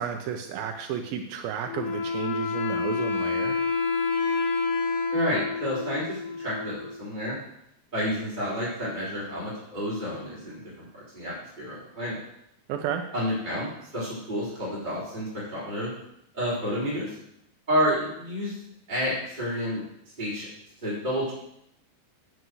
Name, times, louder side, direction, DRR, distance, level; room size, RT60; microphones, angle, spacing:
voice 1, 0.0-3.6 12.7-13.0, right 8 dB, 90° right, 5 dB, 2.1 m, -32 dB
Wind instrument woodwind instrument, 1.7-7.2, left 4 dB, 75° left, 4.5 m, -28 dB
voice 2, 5.1-7.4 7.9-12.2 13.1-15.9 16.3-17.1 17.7-18.6 18.9-19.8 20.2-20.5 20.8-21.3, equal, 10° right, -10 dB, 3.2 m, -30 dB
8.2 x 7.8 x 7.8 m, 0.77 s
omnidirectional pair, 5.3 m